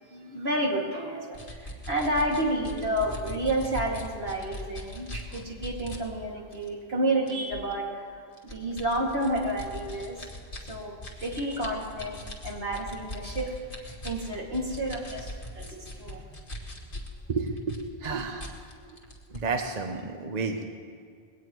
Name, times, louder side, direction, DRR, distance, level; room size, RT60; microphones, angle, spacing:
voice 1, 0.1-10.3 10.7-12.2 12.4-16.2, right 1 dB, 75° right, -2 dB, 2.7 m, -30 dB
sound 1, 1.3-6.0 6.5-6.7 7.3-7.7 8.4-17.2 17.5-19.6, left 1 dB, 55° left, 2.0 m, -40 dB
voice 2, 17.3-18.5 19.3-20.6, right 4 dB, 45° right, 4 dB, 0.9 m, -31 dB
21.0 x 18.0 x 3.1 m, 2.1 s
omnidirectional pair, 1.0 m